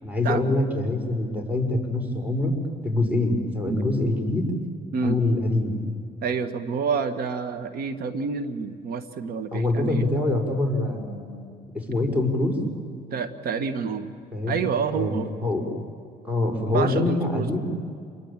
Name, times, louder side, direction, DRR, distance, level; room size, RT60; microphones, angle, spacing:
voice 1, 0.0-2.6 2.8-4.5 5.0-5.8 9.5-11.5 11.9-12.6 14.3-14.6 14.9-15.1 15.4-15.6 16.2-17.6, left 2 dB, 10° right, 4 dB, 6.1 m, -24 dB
voice 2, 6.2-10.0 13.1-14.1 14.5-15.3 16.7-17.6, right 5 dB, 60° right, 10 dB, 1.7 m, -28 dB
28.5 x 22.5 x 9.0 m, 2.3 s
cardioid pair, 110°, 17 cm